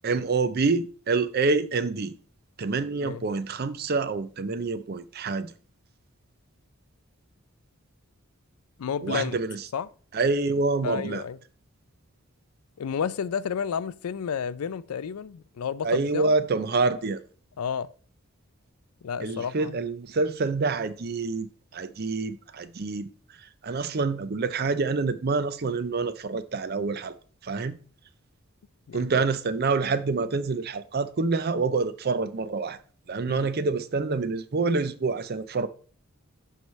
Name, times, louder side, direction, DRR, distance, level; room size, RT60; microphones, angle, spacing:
voice 1, 0.0-2.1 2.6-5.5 9.0-9.6 10.1-11.2 15.8-17.2 19.2-23.1 23.6-27.1 27.4-27.8 28.9-32.8 33.1-35.7, right 4 dB, 45° right, 0.5 m, -27 dB
voice 2, 2.9-3.3 8.8-9.4 9.7-9.9 10.8-11.4 12.8-16.3 17.6-17.9 19.0-19.8 28.9-29.1 33.2-33.5, left 7 dB, 85° left, 0.4 m, -31 dB
11.5 x 4.7 x 3.1 m
head